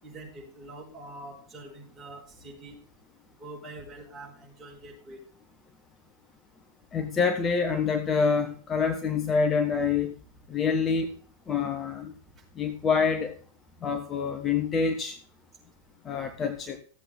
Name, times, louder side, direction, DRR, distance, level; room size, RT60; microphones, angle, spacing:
voice 1, 0.0-2.8 3.4-5.2, right 2 dB, 15° right, -3 dB, 5.3 m, -45 dB
voice 2, 6.9-10.1 10.5-11.1 11.5-12.1 12.6-13.3 13.8-15.2 16.0-16.8, left 5 dB, 25° left, 6 dB, 1.1 m, -26 dB
15.0 x 8.0 x 3.6 m, 0.44 s
figure-of-eight pair, 90°, 0 cm